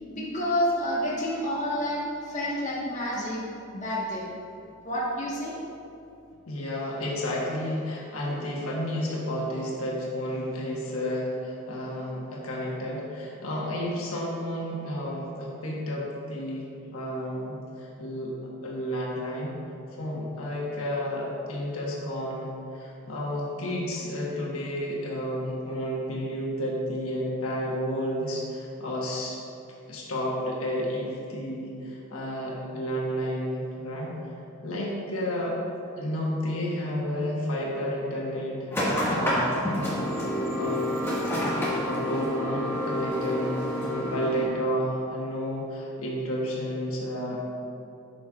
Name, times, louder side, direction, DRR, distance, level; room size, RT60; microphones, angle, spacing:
voice 1, 0.1-3.4 3.7-4.3 4.8-5.5, equal, 35° left, -6 dB, 1.4 m, -29 dB
voice 2, 6.5-16.7 16.9-18.3 18.6-19.6 20.0-22.5 22.7-29.4 29.9-34.2 34.6-35.6 36.0-38.6 39.1-39.7 40.4-40.8 41.8-47.4, equal, 90° left, -4 dB, 1.3 m, -31 dB
sound 1, 38.7-44.4, left 1 dB, 10° left, 1.6 m, -28 dB
11.0 x 5.5 x 2.4 m, 2.7 s
head